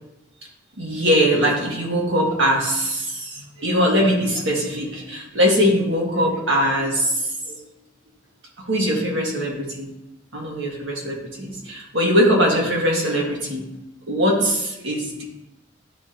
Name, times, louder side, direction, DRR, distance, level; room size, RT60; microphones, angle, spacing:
voice 1, 0.8-7.6 8.7-9.9 10.3-13.7 14.1-15.2, equal, 80° right, -2 dB, 1.7 m, -21 dB
11.0 x 3.9 x 2.9 m, 0.93 s
head